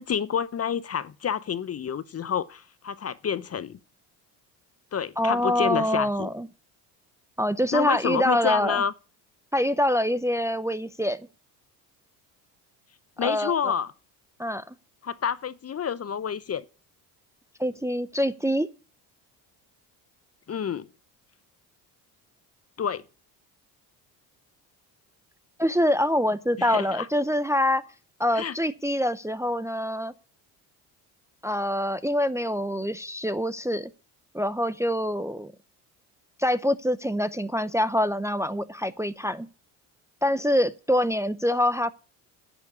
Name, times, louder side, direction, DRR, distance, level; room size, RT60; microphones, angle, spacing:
voice 1, 0.0-3.8 4.9-6.3 7.7-8.9 13.2-13.9 15.0-16.6 20.5-20.9 22.8-23.0 26.6-27.1 28.3-28.5, left 7 dB, 30° left, 0.7 m, -28 dB
voice 2, 5.2-6.5 7.4-8.8 9.5-11.3 13.2-13.7 14.4-14.7 17.6-18.7 25.6-27.8 28.2-30.1 31.4-33.9 34.3-35.5 36.4-39.5 40.2-41.9, equal, 5° right, 0.6 m, -25 dB
10.5 x 7.2 x 8.3 m
supercardioid pair, 70°, 48 cm